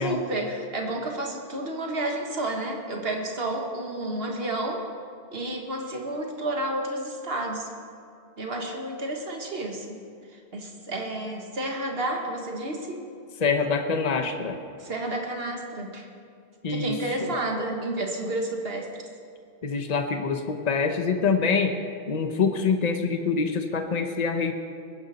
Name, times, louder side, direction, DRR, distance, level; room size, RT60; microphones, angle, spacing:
voice 1, 0.0-4.8 5.3-7.7 8.4-10.0 10.3-13.1 14.8-16.1 16.7-18.9, right 1 dB, 70° right, 1 dB, 1.9 m, -31 dB
voice 2, 13.4-14.6 16.6-16.9 17.2-17.3 19.6-21.8 22.1-24.5, left 5 dB, 45° left, 6 dB, 1.0 m, -25 dB
21.0 x 10.5 x 4.2 m, 2.3 s
omnidirectional pair, 1.0 m